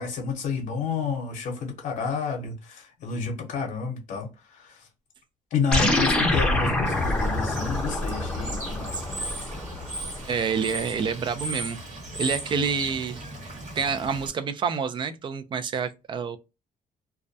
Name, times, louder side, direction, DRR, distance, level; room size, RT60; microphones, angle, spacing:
voice 1, 0.0-4.7 5.5-9.3, left 5 dB, 70° left, 0.7 m, -30 dB
sound 1, 5.7-10.4, left 1 dB, 5° left, 0.6 m, -26 dB
Bird / Water, 6.8-14.3, right 1 dB, 60° right, 1.1 m, -37 dB
voice 2, 10.3-11.8 12.2-13.2 13.7-16.4, right 6 dB, 35° right, 0.3 m, -28 dB
2.2 x 2.1 x 2.5 m
cardioid pair, 130°, 14 cm